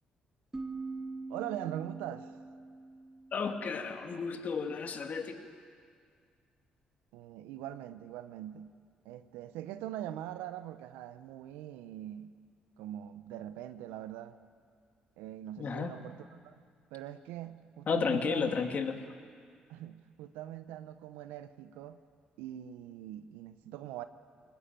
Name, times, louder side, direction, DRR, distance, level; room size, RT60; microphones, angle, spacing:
sound 1, 0.5-4.1, right 3 dB, 15° right, 1.6 m, -44 dB
voice 1, 1.3-2.3 7.1-8.7 9.0-12.3 12.8-14.4 15.2-16.5 16.9-18.8 19.7-22.0 22.4-24.0, right 12 dB, 85° right, 11 dB, 0.8 m, -42 dB
voice 2, 3.3-5.5 15.6-15.9 17.9-19.0, left 5 dB, 55° left, 5 dB, 2.3 m, -32 dB
22.0 x 19.5 x 9.1 m, 2.1 s
supercardioid pair, 55°, 3 cm